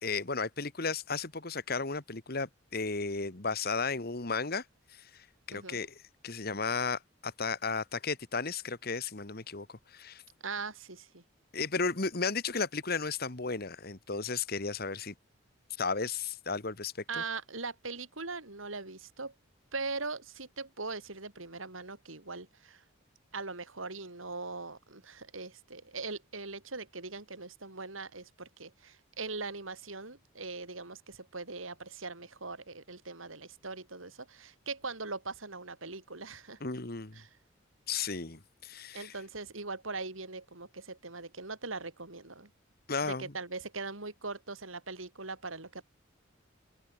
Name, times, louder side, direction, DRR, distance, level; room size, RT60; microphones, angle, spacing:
voice 1, 0.0-4.6 4.9-10.2 11.5-15.1 15.8-17.2 36.6-37.2 37.9-39.1 42.9-43.3, left 4 dB, 50° left, 1.7 m, -34 dB
voice 2, 5.5-5.9 10.4-11.2 17.1-19.3 19.7-22.8 23.3-36.6 37.2-37.3 38.9-42.5 43.1-45.8, right 3 dB, 85° right, 4.2 m, -41 dB
head